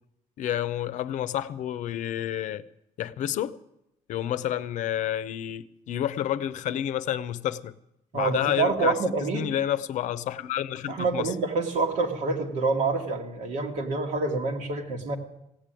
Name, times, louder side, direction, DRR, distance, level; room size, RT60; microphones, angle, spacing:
voice 1, 0.4-2.6 3.0-3.6 4.1-7.7 8.1-9.0 9.3-11.3, left 11 dB, 70° left, 0.6 m, -29 dB
voice 2, 8.1-9.5 10.9-15.2, right 3 dB, 75° right, 1.8 m, -27 dB
16.0 x 8.4 x 9.0 m
cardioid pair, 140°, 13 cm